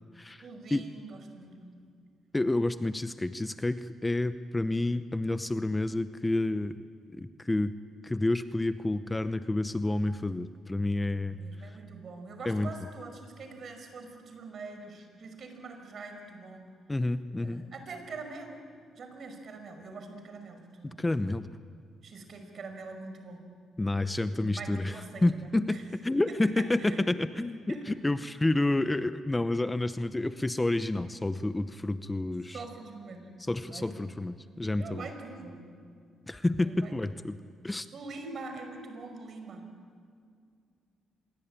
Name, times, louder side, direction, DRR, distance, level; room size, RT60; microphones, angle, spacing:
voice 1, 0.4-1.9 11.3-16.7 17.4-18.6 19.0-21.1 22.0-23.5 24.4-25.9 26.3-27.0 27.7-27.9 32.5-33.3 33.7-34.2 34.8-35.6 36.6-37.2 37.9-39.6, right 3 dB, 55° right, 6 dB, 5.4 m, -44 dB
voice 2, 2.3-6.8 7.1-7.7 8.0-11.4 12.4-12.7 16.9-17.6 20.8-21.5 23.8-25.0 25.2-32.6 33.4-35.1 36.3-37.4 37.6-37.9, left 2 dB, 15° left, 12 dB, 0.8 m, -29 dB
26.5 x 22.5 x 9.0 m, 2.2 s
cardioid pair, 90°, 0 cm